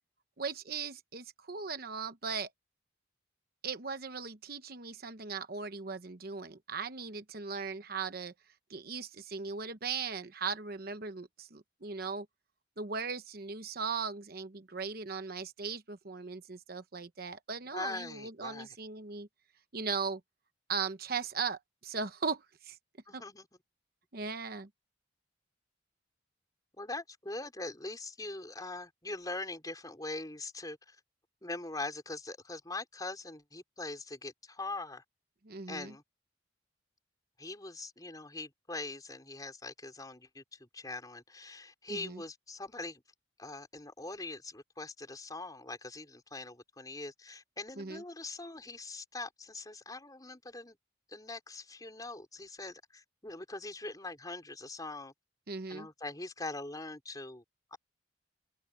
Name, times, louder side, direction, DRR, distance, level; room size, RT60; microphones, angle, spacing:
voice 1, 0.4-2.5 3.6-8.3 8.7-12.3 12.8-19.3 19.7-20.2 20.7-22.8 23.1-23.2 24.1-24.7 35.5-35.9 41.9-42.2 47.8-48.0 55.5-55.9, right 5 dB, 50° right, 1.0 m, -38 dB
voice 2, 17.7-18.8 23.1-23.5 26.8-31.0 31.4-35.0 35.7-36.0 37.4-43.0 43.4-50.8 51.1-55.1 55.7-57.4 57.7-57.8, left 2 dB, 20° left, 4.4 m, -42 dB
head